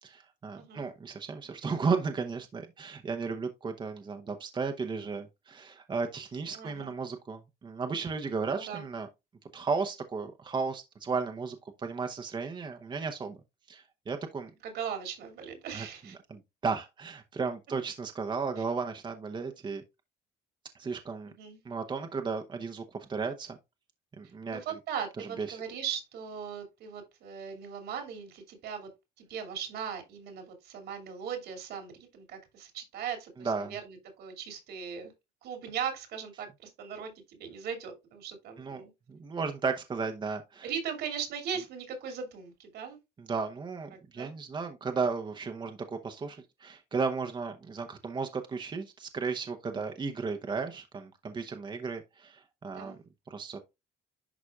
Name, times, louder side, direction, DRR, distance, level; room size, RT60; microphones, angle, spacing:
voice 1, 0.0-9.1 9.5-13.4 13.7-14.5 15.7-15.9 16.3-19.8 20.7-21.3 21.6-23.6 24.2-24.6 25.2-25.6 33.4-33.7 38.6-38.8 39.1-40.7 43.2-53.0 53.3-53.6, right 4 dB, 25° right, 0.9 m, -34 dB
voice 2, 0.5-0.9 6.5-6.9 8.5-8.9 14.6-16.2 21.3-21.6 24.5-28.9 29.2-35.1 35.4-38.9 40.6-43.0 44.1-44.3 52.7-53.0, right 7 dB, 75° right, 2.6 m, -39 dB
11.0 x 4.1 x 2.4 m
cardioid pair, 110°, 17 cm